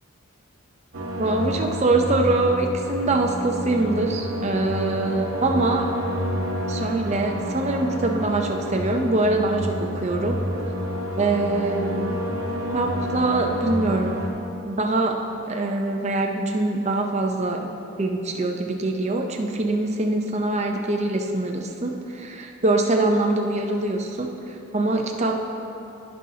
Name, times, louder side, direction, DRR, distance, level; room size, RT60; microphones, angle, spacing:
sound 1, 0.9-14.3, equal, 75° right, 1.1 m, -29 dB
voice 1, 1.2-5.9 6.7-10.4 11.2-12.1 12.7-14.2 14.7-17.7 18.0-25.4, right 2 dB, 30° right, 3 dB, 0.6 m, -24 dB
16.5 x 5.5 x 2.8 m, 2.8 s
head